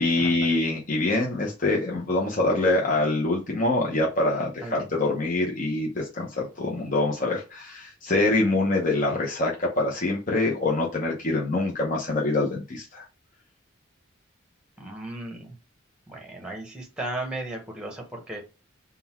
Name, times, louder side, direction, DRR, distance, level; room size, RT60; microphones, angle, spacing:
voice 1, 0.0-13.0, left 2 dB, 40° left, -2 dB, 0.8 m, -25 dB
voice 2, 14.8-15.6 16.1-18.4, right 2 dB, 5° right, 1 dB, 0.9 m, -35 dB
3.8 x 2.3 x 4.2 m, 0.30 s
head